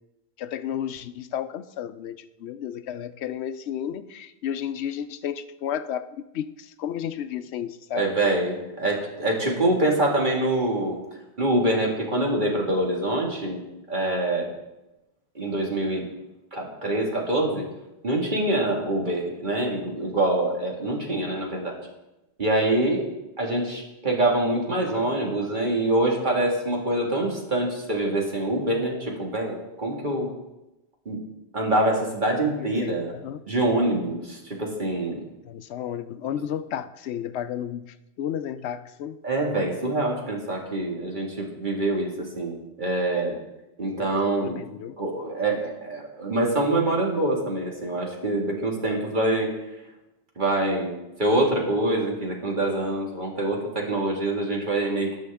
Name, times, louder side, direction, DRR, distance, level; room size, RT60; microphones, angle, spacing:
voice 1, 0.4-8.1 32.5-33.4 35.5-37.9 38.2-39.2 43.9-45.0, left 9 dB, 85° left, 12 dB, 0.9 m, -32 dB
voice 2, 7.9-11.0 11.4-13.6 13.9-14.5 15.4-16.1 16.5-17.7 18.0-21.8 22.4-23.1 23.4-30.3 31.1-31.2 31.5-33.1 33.5-35.2 39.2-43.4 43.8-44.6 45.0-49.5 50.4-50.9 51.2-55.2, right 1 dB, 50° right, -1 dB, 2.1 m, -25 dB
18.5 x 6.2 x 3.5 m, 0.96 s
omnidirectional pair, 1.1 m